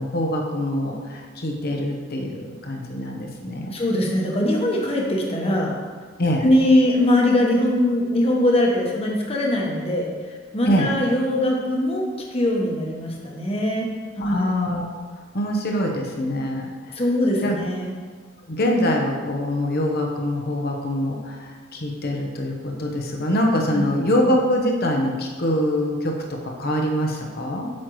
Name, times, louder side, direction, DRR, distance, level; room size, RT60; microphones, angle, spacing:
voice 1, 0.0-3.7 6.2-6.4 10.6-10.9 14.2-14.9 15.3-17.0 17.4-17.6 18.5-27.7, equal, 55° left, 1 dB, 0.9 m, -24 dB
voice 2, 3.7-5.7 6.4-10.1 10.5-12.0 12.3-13.9 14.2-14.4 16.9-17.9 23.7-23.9, left 1 dB, 30° left, -1 dB, 1.2 m, -21 dB
8.5 x 6.4 x 3.1 m, 1.5 s
head